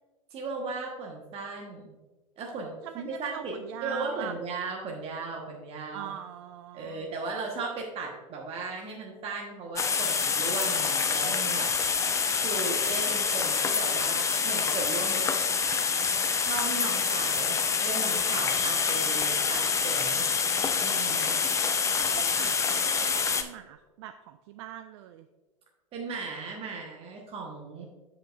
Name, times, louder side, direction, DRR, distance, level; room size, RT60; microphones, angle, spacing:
voice 1, 0.3-1.9 2.4-3.6 3.8-6.1 6.7-11.7 12.0-15.3 16.4-20.3 20.8-21.4 25.9-27.8, right 3 dB, 35° right, 0 dB, 1.1 m, -37 dB
voice 2, 2.8-4.4 5.9-7.1 21.9-25.3, right 11 dB, 55° right, 9 dB, 0.4 m, -42 dB
sound 1, 9.8-23.4, left 5 dB, 15° left, 0.5 m, -26 dB
7.7 x 7.4 x 2.4 m, 1.2 s
figure-of-eight pair, 90°, 17 cm